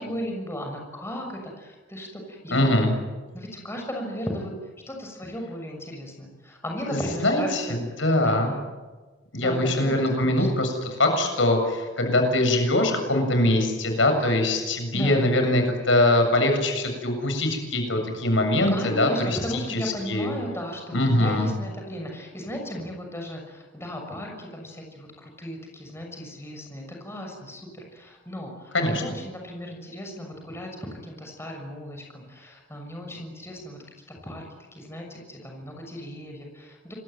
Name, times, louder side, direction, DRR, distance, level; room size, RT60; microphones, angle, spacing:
voice 1, 0.0-2.8 3.3-4.5 4.9-7.8 8.2-8.6 9.4-10.5 14.2-14.4 14.9-15.3 18.7-34.5 34.7-36.9, equal, 15° left, 1 dB, 6.6 m, -36 dB
voice 2, 2.5-2.9 6.9-8.5 9.3-19.8 20.1-20.3 20.9-21.5 28.7-29.0, left 1 dB, 80° left, 5 dB, 7.3 m, -22 dB
28.0 x 23.0 x 9.4 m, 1.3 s
head